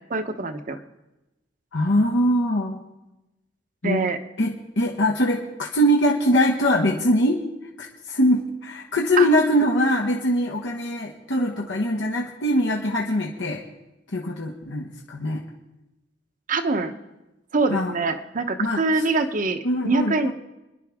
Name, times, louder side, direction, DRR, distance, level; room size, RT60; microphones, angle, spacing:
voice 1, 0.1-0.8 3.8-4.2 9.2-9.3 16.5-16.9 17.5-20.3, right 3 dB, 45° right, 7 dB, 0.9 m, -24 dB
voice 2, 1.7-2.8 3.8-4.1 4.4-7.4 7.8-13.6 14.1-15.4 17.7-17.9 18.6-18.8 19.6-20.3, equal, 85° left, -2 dB, 1.4 m, -22 dB
28.0 x 10.5 x 3.6 m, 0.99 s
head